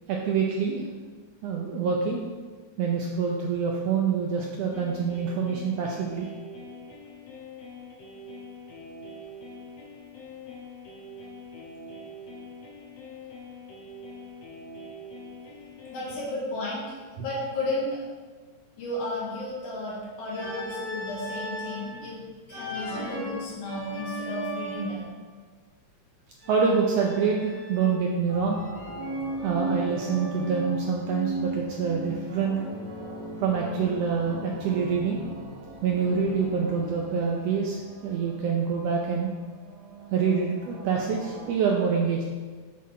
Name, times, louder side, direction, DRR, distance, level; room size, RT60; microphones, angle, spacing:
voice 1, 0.1-0.8 1.4-2.2 2.8-6.3 26.5-28.6 29.4-32.5 33.4-35.2 35.8-39.3 40.1-42.2, right 6 dB, 80° right, -1 dB, 1.5 m, -26 dB
sound 1, 4.7-16.2, left 1 dB, 70° left, 2.1 m, -44 dB
voice 2, 15.9-18.0 18.8-22.2 22.5-25.1, left 1 dB, 90° left, -7 dB, 3.1 m, -33 dB
Organ, 20.3-21.9 22.5-25.1 26.4-28.1 28.5-30.8 32.4-34.2 34.5-37.2, equal, 35° right, 1.4 m, -39 dB
sound 2, 28.3-41.5, right 2 dB, 60° right, 1.9 m, -38 dB
7.3 x 4.1 x 4.2 m, 1.5 s
omnidirectional pair, 3.4 m